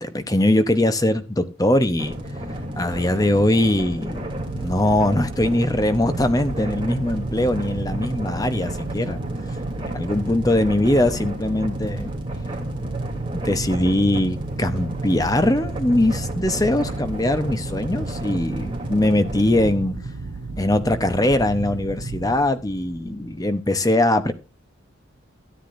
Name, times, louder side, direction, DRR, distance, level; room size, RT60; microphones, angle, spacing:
voice 1, 0.0-2.1 2.8-4.3 4.6-9.2 9.8-12.1 13.4-20.0 20.6-24.3, left 1 dB, 15° left, 10 dB, 0.8 m, -21 dB
sound 1, 2.0-19.7, equal, 25° right, 3.0 m, -32 dB
sound 2, 4.4-22.3, right 3 dB, 55° right, 0.6 m, -33 dB
sound 3, 18.4-23.6, equal, 80° left, 5.4 m, -44 dB
13.5 x 9.7 x 2.6 m, 0.28 s
head